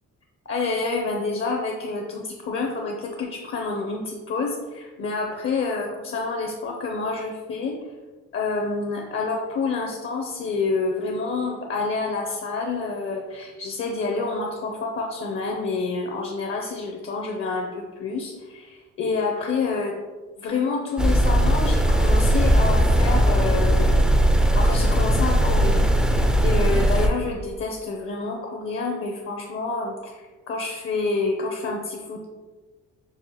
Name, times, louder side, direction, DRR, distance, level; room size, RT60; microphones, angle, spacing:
voice 1, 0.5-7.8 8.3-20.0 20.4-24.0 24.6-32.3, left 4 dB, 45° left, 1 dB, 0.5 m, -28 dB
sound 1, 21.0-27.1, right 1 dB, 5° right, 0.3 m, -19 dB
5.5 x 2.1 x 2.9 m, 1.3 s
cardioid pair, 90°, 30 cm